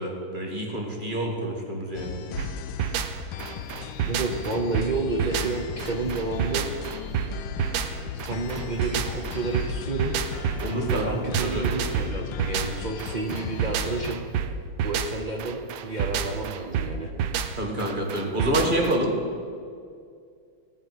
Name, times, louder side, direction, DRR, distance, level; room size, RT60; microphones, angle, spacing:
voice 1, 0.0-2.2 10.6-11.2 11.4-11.6 17.6-19.1, right 1 dB, 25° right, 0 dB, 2.1 m, -27 dB
sound 1, 1.9-14.1, left 8 dB, 70° left, 1.2 m, -37 dB
sound 2, 2.4-19.0, right 7 dB, 80° right, 1.5 m, -29 dB
voice 2, 4.1-6.7 8.3-10.1 10.9-14.3 14.8-17.1, right 3 dB, 60° right, 1 dB, 0.4 m, -30 dB
14.5 x 5.4 x 9.3 m, 2.2 s
omnidirectional pair, 2.2 m